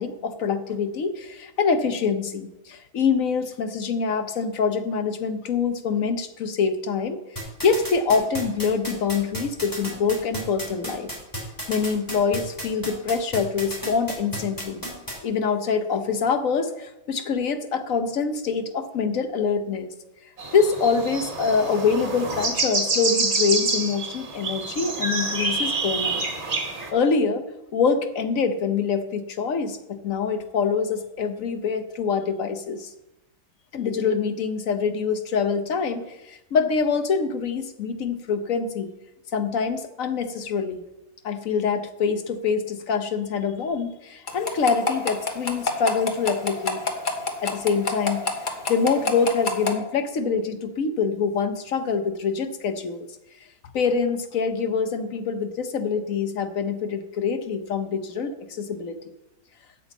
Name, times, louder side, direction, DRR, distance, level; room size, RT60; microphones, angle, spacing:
voice 1, 0.0-7.2 7.6-11.1 11.7-14.8 15.2-19.9 20.5-26.2 26.9-27.4 27.7-32.9 33.7-38.9 39.3-40.8 41.2-46.8 47.4-48.2 48.7-53.1 53.7-59.0, left 5 dB, 65° left, 9 dB, 1.3 m, -25 dB
sound 1, 7.4-15.1, equal, 15° left, 3.0 m, -32 dB
sound 2, 20.4-26.9, right 3 dB, 50° right, 1.7 m, -27 dB
sound 3, 44.3-49.7, left 4 dB, 35° left, 1.2 m, -25 dB
8.6 x 6.2 x 8.0 m, 0.94 s
omnidirectional pair, 1.6 m